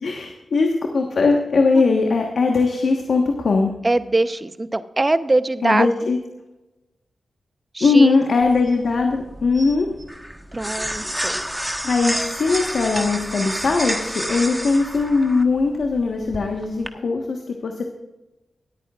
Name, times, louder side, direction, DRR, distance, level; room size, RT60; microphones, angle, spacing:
voice 1, 0.0-3.7 5.6-6.2 7.8-9.9 11.4-11.5 11.8-17.9, left 4 dB, 75° left, 2 dB, 1.3 m, -20 dB
voice 2, 3.8-5.9 7.7-8.2 10.5-11.4, right 2 dB, 30° right, 12 dB, 0.8 m, -22 dB
sound 1, 8.3-8.8 9.5-11.1 11.8-11.9, right 2 dB, 50° right, 2.7 m, -45 dB
sound 2, 8.4-16.9, equal, 5° right, 1.3 m, -30 dB
24.5 x 8.8 x 2.4 m, 1.0 s
cardioid pair, 45°, 0 cm